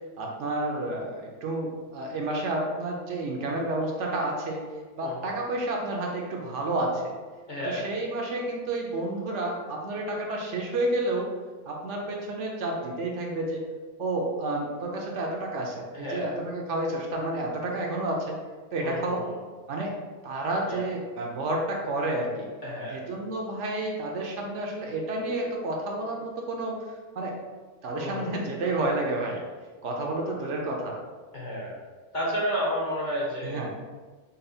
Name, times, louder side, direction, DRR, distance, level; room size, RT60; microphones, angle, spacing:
voice 1, 0.2-4.6 5.0-7.1 7.7-11.3 11.7-13.6 14.0-18.4 18.7-19.3 19.7-20.0 20.2-22.5 22.9-26.8 27.2-27.4 27.8-29.4 29.8-31.0 33.4-33.7, right 2 dB, 70° right, 0 dB, 1.0 m, -30 dB
voice 2, 5.0-5.3 7.5-7.8 15.9-16.3 18.8-19.4 20.6-20.8 22.6-23.0 27.9-28.3 31.3-31.8 32.1-33.8, equal, 45° left, -4 dB, 0.9 m, -31 dB
5.4 x 2.3 x 2.6 m, 1.4 s
omnidirectional pair, 1.3 m